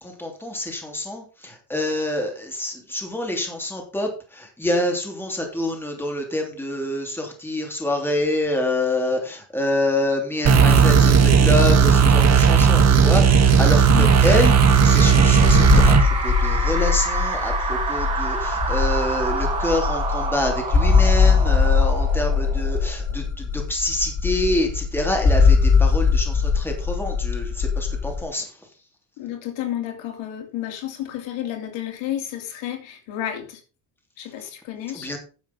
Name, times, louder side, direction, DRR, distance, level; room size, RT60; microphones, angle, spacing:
voice 1, 0.0-14.6 14.8-28.5 34.9-35.2, left 1 dB, 5° left, 3.0 m, -26 dB
sound 1, 10.5-16.0, right 6 dB, 35° right, 1.7 m, -15 dB
sound 2, 13.4-23.1, right 4 dB, 15° right, 5.3 m, -29 dB
voice 2, 13.9-14.2 29.2-33.6 34.2-35.1, left 11 dB, 70° left, 3.1 m, -31 dB
sound 3, 13.9-28.2, left 5 dB, 30° left, 3.4 m, -21 dB
10.5 x 7.3 x 5.4 m
cardioid pair, 150°, 46 cm